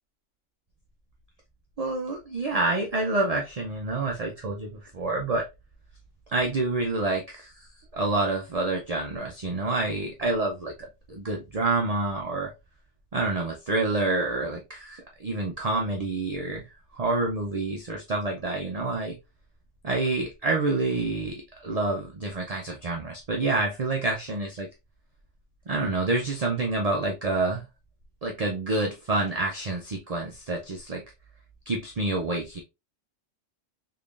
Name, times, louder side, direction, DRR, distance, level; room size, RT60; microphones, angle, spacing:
voice 1, 1.8-5.5 6.3-10.7 11.1-12.5 13.1-19.2 19.8-24.7 25.7-27.6 28.2-31.0 31.7-32.6, right 2 dB, 45° right, 0.5 m, -28 dB
3.8 x 3.3 x 2.4 m
omnidirectional pair, 1.4 m